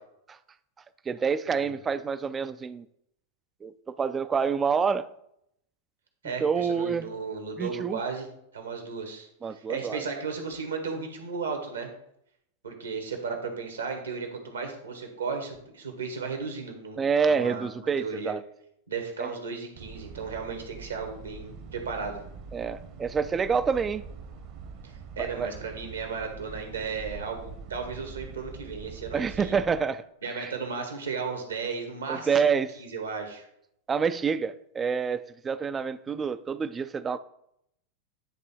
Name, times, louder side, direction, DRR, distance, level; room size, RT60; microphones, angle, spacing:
voice 1, 1.1-2.9 3.6-5.1 6.4-7.1 7.6-8.0 9.4-10.1 17.0-18.4 19.2-19.3 22.5-24.0 25.2-25.5 29.1-30.5 32.1-32.8 33.9-37.2, right 6 dB, 20° right, 14 dB, 0.4 m, -27 dB
voice 2, 6.2-8.3 8.5-11.9 12.6-17.0 17.3-18.3 18.9-22.2 24.8-29.5 30.2-33.5, right 5 dB, 75° right, 4 dB, 1.5 m, -35 dB
sound 1, 19.7-29.8, right 5 dB, 45° right, 1.0 m, -44 dB
10.0 x 3.5 x 4.3 m, 0.74 s
figure-of-eight pair, 90°, 0 cm